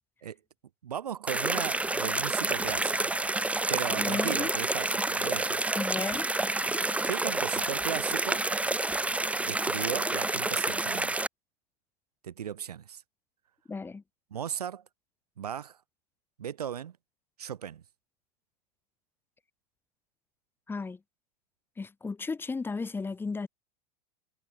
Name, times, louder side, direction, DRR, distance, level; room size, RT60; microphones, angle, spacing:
voice 1, 0.8-3.1 3.7-5.7 7.0-8.4 9.5-11.2 12.2-13.0 14.3-14.8 15.4-15.8 16.4-17.0 17.4-17.8, right 9 dB, 70° right, 5.0 m, -36 dB
sound 1, 1.3-11.3, right 2 dB, 5° right, 1.3 m, -29 dB
voice 2, 4.0-4.5 5.7-6.3 13.7-14.0 20.7-21.0 21.8-23.5, left 4 dB, 10° left, 1.0 m, -34 dB
figure-of-eight pair, 85°, 21 cm